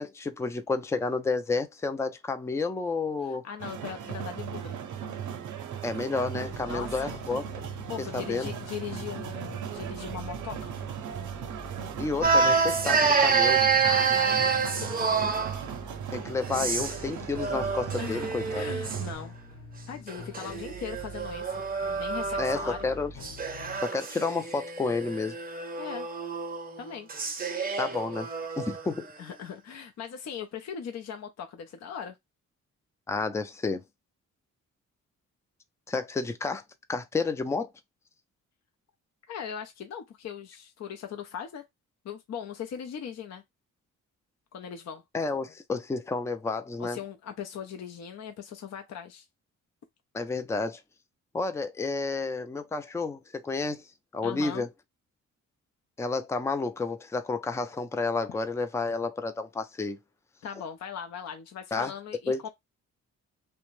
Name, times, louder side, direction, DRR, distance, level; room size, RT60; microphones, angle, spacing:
voice 1, 0.0-3.4 5.8-7.4 8.0-8.5 12.0-13.7 16.1-18.6 22.4-23.1 23.8-25.4 27.8-28.3 28.6-29.1 33.1-33.8 35.9-36.6 36.9-37.7 45.1-47.0 50.1-50.8 51.3-53.8 54.1-54.7 56.0-60.0 61.7-61.9 62.3-62.5, left 3 dB, 10° left, 0.4 m, -30 dB
voice 2, 3.2-4.8 6.6-7.1 7.9-10.7 13.8-15.3 18.0-19.3 19.9-21.5 22.0-22.9 25.8-26.1 26.8-27.1 29.2-32.2 39.3-41.6 42.0-43.4 44.5-45.0 46.8-49.2 54.2-54.6 60.4-62.5, left 8 dB, 60° left, 0.6 m, -39 dB
sound 1, 3.6-19.2, right 8 dB, 70° right, 0.6 m, -38 dB
sound 2, 6.4-23.8, left 1 dB, 75° left, 1.0 m, -46 dB
sound 3, 12.2-15.6 16.4-17.1 17.4-19.0 20.1-22.8 23.2-28.8, right 5 dB, 30° right, 0.6 m, -28 dB
2.5 x 2.1 x 3.0 m
cardioid pair, 90°, 31 cm